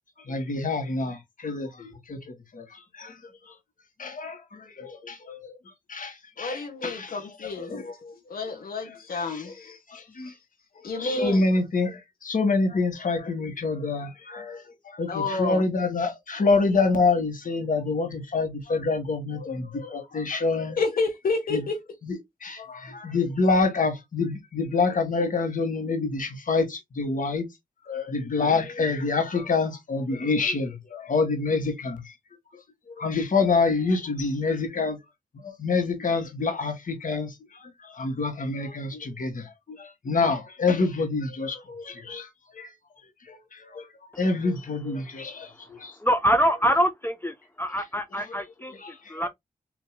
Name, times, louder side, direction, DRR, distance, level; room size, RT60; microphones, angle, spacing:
voice 1, 0.2-3.2 3.4-3.5 4.0-5.5 5.9-7.2 7.4-8.2 9.2-9.5 9.9-10.3 11.0-20.8 21.5-21.6 22.0-27.5 27.8-32.1 32.9-35.0 35.3-42.7 43.2-43.9 44.2-45.9 48.7-49.3, left 3 dB, 65° left, 1.6 m, -27 dB
voice 2, 6.4-7.7 8.3-9.8 10.2-10.3 10.8-11.4 15.1-15.7 20.8-21.8, left 4 dB, 85° left, 1.3 m, -29 dB
voice 3, 45.7-49.3, equal, 15° left, 0.7 m, -25 dB
6.2 x 2.9 x 2.2 m
cardioid pair, 60°, 15 cm